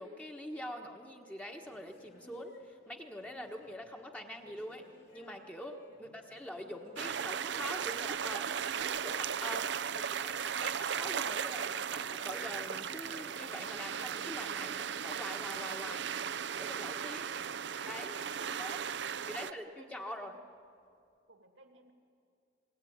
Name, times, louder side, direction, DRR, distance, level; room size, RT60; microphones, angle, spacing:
voice 1, 0.0-4.8 5.1-9.6 9.9-16.1 16.6-17.3 17.9-18.2 18.4-18.8 19.2-20.4, equal, 5° left, 2 dB, 1.3 m, -44 dB
sound 1, 1.6-9.2 9.5-9.8 10.2-10.3 11.6-14.3 14.7-14.9 15.6-15.7 16.6-16.7 17.4-17.5, left 1 dB, 60° left, 5.2 m, -59 dB
voice 2, 6.0-6.4 17.3-17.7 18.1-18.6 19.0-20.4 21.3-21.9, right 3 dB, 80° right, 5 dB, 2.3 m, -57 dB
sound 2, 7.0-19.5, right 7 dB, 65° right, 0.6 m, -36 dB
26.5 x 21.0 x 9.6 m, 2.4 s
head